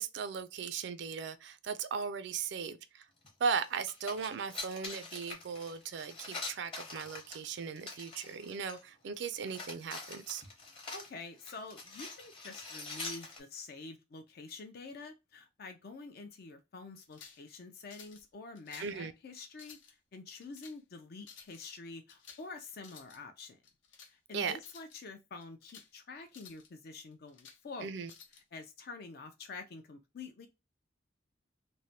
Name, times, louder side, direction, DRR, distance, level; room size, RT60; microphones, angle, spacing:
voice 1, 0.0-3.1 3.4-10.4 18.8-19.1 24.3-24.6 27.8-28.1, right 6 dB, 60° right, 0.3 m, -37 dB
sound 1, 3.2-3.3 3.6-8.8 9.2-13.4, left 3 dB, 25° left, 0.8 m, -45 dB
voice 2, 10.9-23.6 24.1-27.9 28.5-30.5, left 3 dB, 50° left, 0.4 m, -47 dB
sound 2, 17.0-17.4 17.9-18.2 18.5-19.0 19.5-19.9 20.4-20.8 21.2-21.6 22.1-22.5 22.7-23.2 23.6-24.1 24.5-25.0 25.4-25.9 26.3-26.7 27.1-27.6 28.1-28.4, left 6 dB, 70° left, 0.8 m, -55 dB
3.1 x 2.1 x 2.7 m
head